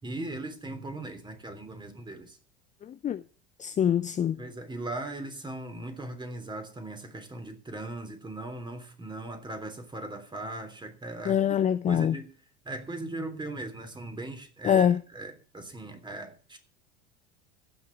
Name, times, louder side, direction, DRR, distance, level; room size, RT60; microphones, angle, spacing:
voice 1, 0.0-2.4 4.4-11.6 11.9-12.3 12.6-14.9 15.1-16.6, right 2 dB, 15° right, 3.4 m, -38 dB
voice 2, 2.8-3.2 3.6-4.5 11.2-12.2 14.6-15.0, left 9 dB, 20° left, 0.6 m, -25 dB
16.0 x 6.2 x 8.5 m
figure-of-eight pair, 80°, 33 cm